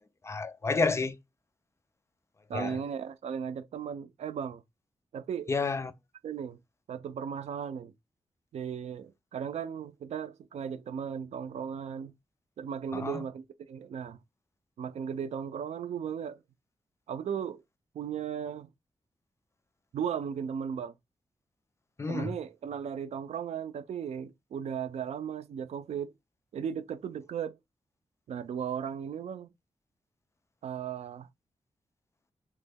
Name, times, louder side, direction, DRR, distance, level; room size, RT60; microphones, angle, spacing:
voice 1, 0.2-1.2 2.5-2.8 5.5-5.9 12.9-13.2 22.0-22.4, left 4 dB, 25° left, 0.3 m, -30 dB
voice 2, 2.5-4.6 5.1-5.5 6.2-6.6 6.9-7.9 8.5-12.1 12.6-14.2 14.8-16.4 17.1-17.6 17.9-18.7 19.9-20.9 22.1-26.1 26.5-27.6 28.3-29.5 30.6-31.3, right 8 dB, 90° right, 0.4 m, -36 dB
3.0 x 2.1 x 3.4 m
wide cardioid pair, 125°, 11 cm